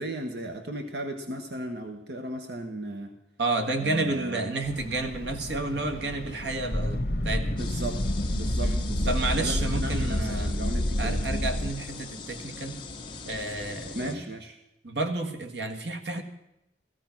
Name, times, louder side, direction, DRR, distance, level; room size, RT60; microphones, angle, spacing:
voice 1, 0.0-3.1 3.8-4.5 7.5-8.0 8.3-10.2 10.4-11.2 13.9-14.5, right 1 dB, 70° right, 5 dB, 1.2 m, -35 dB
voice 2, 3.4-7.6 8.6-10.6 11.0-12.8 13.2-14.2 14.8-16.2, right 2 dB, 90° right, 6 dB, 1.7 m, -31 dB
sound 1, 4.6-11.7, left 1 dB, 60° left, 1.3 m, -29 dB
sound 2, 7.6-14.1, left 3 dB, 25° left, 1.3 m, -41 dB
15.5 x 14.5 x 5.9 m, 0.89 s
head